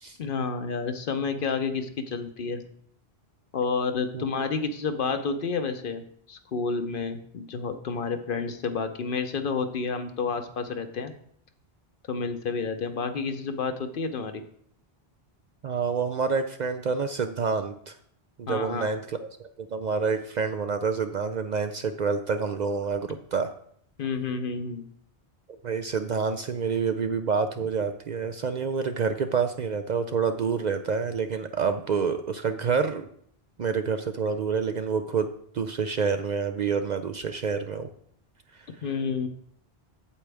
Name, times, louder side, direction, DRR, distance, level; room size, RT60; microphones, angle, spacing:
voice 1, 0.2-2.6 3.5-6.0 6.3-11.1 12.1-14.4 18.5-18.9 24.0-24.8 38.8-39.3, left 5 dB, 60° left, 8 dB, 0.9 m, -30 dB
voice 2, 15.6-17.9 18.4-23.5 25.6-33.1 33.6-35.3 35.5-37.9, right 5 dB, 55° right, 8 dB, 0.5 m, -28 dB
8.4 x 7.9 x 3.4 m, 0.65 s
omnidirectional pair, 1.1 m